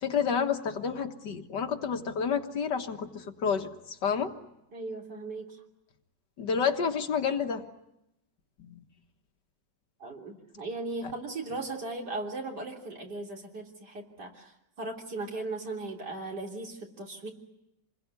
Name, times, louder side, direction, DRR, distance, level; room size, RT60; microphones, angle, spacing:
voice 1, 0.0-4.3 6.4-7.7 8.6-8.8 11.0-11.1, left 6 dB, 70° left, 5 dB, 2.2 m, -30 dB
voice 2, 4.7-5.6 10.0-17.3, right 2 dB, 65° right, 0 dB, 4.0 m, -37 dB
28.0 x 21.0 x 9.6 m, 0.86 s
omnidirectional pair, 1.9 m